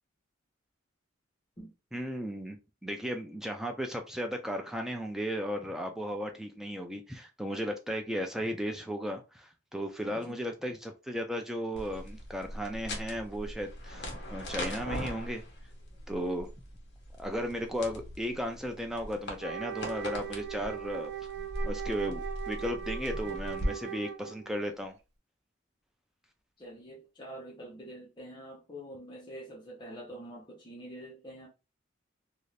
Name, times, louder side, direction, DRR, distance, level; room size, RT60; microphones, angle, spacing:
voice 1, 1.9-2.6 2.8-15.4 16.1-16.5 17.2-21.1 21.6-25.0, equal, ahead, 0.3 m, -35 dB
voice 2, 10.0-10.3 26.6-31.5, right 1 dB, 25° left, 0.7 m, -46 dB
sound 1, 11.8-23.7, equal, 55° left, 0.9 m, -40 dB
Wind instrument woodwind instrument, 19.4-24.6, right 10 dB, 60° right, 0.5 m, -39 dB
2.6 x 2.4 x 3.1 m
head